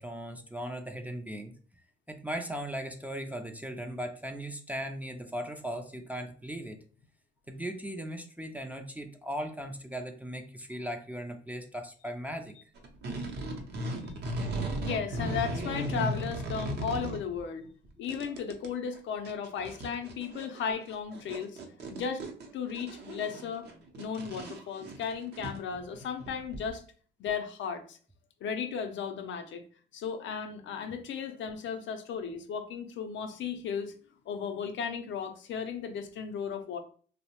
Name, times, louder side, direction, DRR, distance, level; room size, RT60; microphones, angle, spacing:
voice 1, 0.0-1.5 2.1-6.8 7.5-12.5, equal, 10° right, 4 dB, 0.3 m, -38 dB
sound 1, 12.8-17.4 17.8-18.7 18.9-19.0 19.2-26.7, right 1 dB, 55° right, 0.6 m, -36 dB
voice 2, 14.8-17.7 18.0-21.6 21.9-22.2 22.5-23.7 24.0-26.8 27.2-28.0 28.4-29.6 29.9-33.9 34.3-36.8, left 6 dB, 70° left, 7 dB, 0.5 m, -35 dB
2.7 x 2.0 x 2.8 m, 0.44 s
cardioid pair, 90°, 20 cm